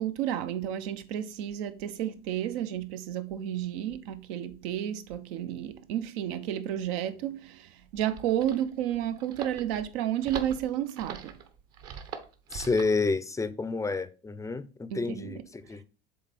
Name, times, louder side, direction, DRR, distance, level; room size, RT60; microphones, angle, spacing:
voice 1, 0.0-11.4 14.9-15.4, right 11 dB, 65° right, 0.8 m, -32 dB
sound 1, 7.8-13.0, right 7 dB, 50° right, 1.1 m, -42 dB
voice 2, 12.5-15.8, left 3 dB, 10° left, 0.5 m, -30 dB
7.4 x 3.7 x 4.2 m
hypercardioid pair, 75°, 32 cm